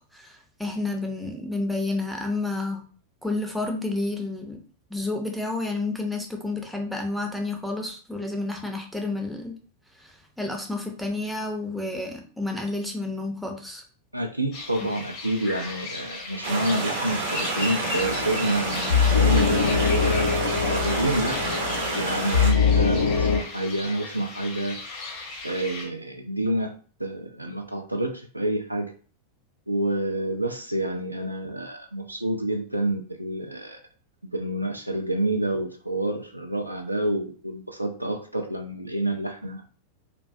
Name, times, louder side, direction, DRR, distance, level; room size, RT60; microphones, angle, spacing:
voice 1, 0.1-2.8 3.2-4.6 4.9-9.6 10.0-13.8, left 2 dB, ahead, 2 dB, 0.5 m, -30 dB
voice 2, 14.1-21.4 21.9-24.8 25.4-26.7 27.0-28.9 29.7-33.8 34.3-39.6, right 1 dB, 85° right, 4 dB, 0.3 m, -28 dB
sound 1, 14.5-25.9, left 3 dB, 45° left, 0.7 m, -36 dB
sound 2, 16.4-22.5, right 2 dB, 60° right, 0.7 m, -29 dB
sound 3, 18.0-23.4, left 6 dB, 70° left, 0.4 m, -23 dB
2.3 x 2.2 x 2.5 m, 0.41 s
figure-of-eight pair, 90°, 0 cm